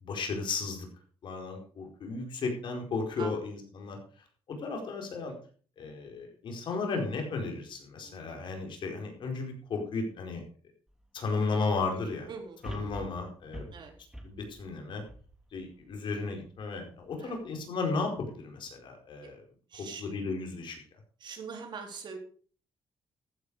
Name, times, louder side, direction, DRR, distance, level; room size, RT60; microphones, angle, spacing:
voice 1, 0.0-0.9 1.2-4.0 4.5-5.3 5.8-10.4 11.1-12.3 12.6-13.7 14.2-15.0 15.5-19.4 19.8-20.8, left 4 dB, 60° left, 2 dB, 4.7 m, -34 dB
sound 1, 10.9-11.0 12.6-16.0 16.5-16.6, right 1 dB, 5° right, 3.1 m, -45 dB
voice 2, 11.9-13.0 13.7-13.9 17.2-17.3 19.2-19.3 19.7-20.2 21.2-22.2, right 5 dB, 55° right, 4 dB, 3.9 m, -43 dB
14.5 x 9.4 x 5.0 m, 0.42 s
cardioid pair, 110°, 9 cm